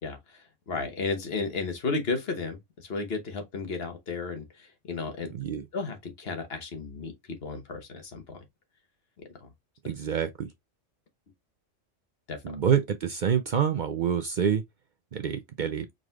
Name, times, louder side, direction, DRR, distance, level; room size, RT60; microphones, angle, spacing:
voice 1, 0.0-5.3 5.7-8.4 9.4-9.5 12.3-12.4, left 4 dB, 55° left, 1.2 m, -33 dB
voice 2, 5.3-5.7 9.8-10.5 12.4-14.6 15.1-15.9, right 8 dB, 60° right, 0.5 m, -27 dB
4.7 x 3.8 x 2.3 m
omnidirectional pair, 1.3 m